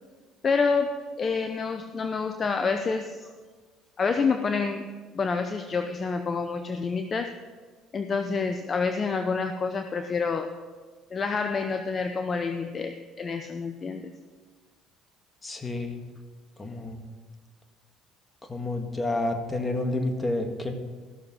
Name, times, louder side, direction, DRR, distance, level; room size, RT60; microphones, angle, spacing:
voice 1, 0.4-3.3 4.0-4.9 5.1-7.3 7.9-10.5 11.1-14.1, left 4 dB, 40° left, 8 dB, 0.7 m, -28 dB
voice 2, 15.4-16.0 16.6-17.0 18.5-20.7, left 2 dB, 20° left, 5 dB, 1.7 m, -29 dB
14.5 x 6.7 x 5.9 m, 1.4 s
supercardioid pair, 75°, 0 cm